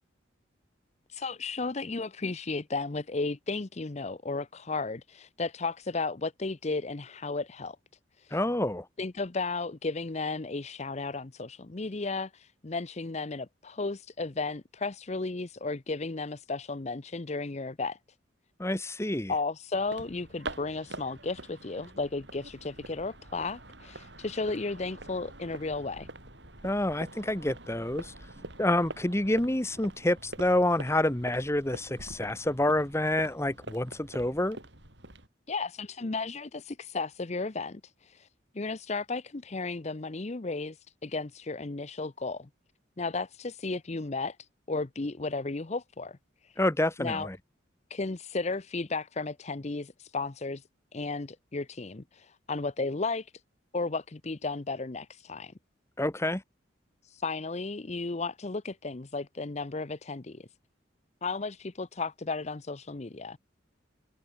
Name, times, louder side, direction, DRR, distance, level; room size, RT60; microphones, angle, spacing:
voice 1, 1.1-7.8 8.2-8.4 9.0-18.0 19.3-26.1 35.5-38.3 38.5-42.5 43.0-46.2 46.4-46.5 47.0-47.3 47.9-50.6 50.9-53.3 53.7-55.5 57.0-60.5 61.2-63.4, left 3 dB, 35° left, 0.7 m, -34 dB
voice 2, 8.3-8.9 18.6-19.3 26.6-34.6 46.6-47.3 56.0-56.4, left 1 dB, 15° left, 1.3 m, -28 dB
sound 1, 19.7-35.3, right 2 dB, 60° right, 7.7 m, -45 dB
head